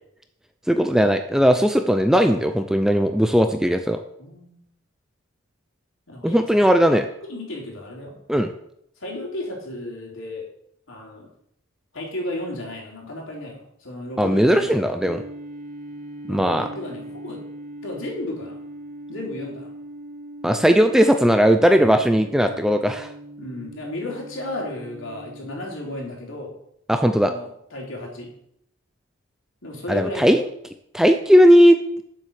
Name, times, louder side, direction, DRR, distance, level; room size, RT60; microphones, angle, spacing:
voice 1, 0.7-4.0 6.2-7.1 8.3-8.5 14.2-15.2 16.3-16.7 20.4-23.1 26.9-27.3 29.9-30.4 30.9-31.8, equal, ahead, 7 dB, 0.5 m, -17 dB
voice 2, 4.2-4.7 6.1-8.2 9.0-10.5 10.9-11.3 11.9-14.7 16.3-17.4 17.8-18.6 19.1-19.7 23.4-26.6 27.2-28.3 29.6-30.4, left 1 dB, 65° left, -1 dB, 3.8 m, -34 dB
sound 1, 15.0-25.6, right 1 dB, 35° right, 1.6 m, -40 dB
10.5 x 7.7 x 6.6 m, 0.75 s
head